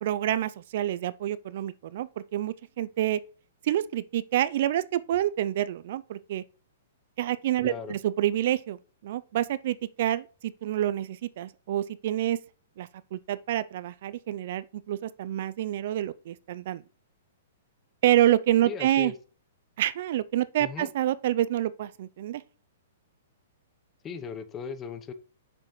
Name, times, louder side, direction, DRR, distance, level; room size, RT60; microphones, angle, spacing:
voice 1, 0.0-3.2 3.6-6.4 7.2-8.8 9.0-12.4 12.8-16.8 18.0-19.1 19.8-22.4, right 12 dB, 60° right, 0.4 m, -27 dB
voice 2, 7.6-7.9 18.7-19.1 20.6-20.9 24.0-25.1, left 6 dB, 20° left, 0.7 m, -37 dB
6.4 x 6.3 x 3.1 m
hypercardioid pair, 130°, 0 cm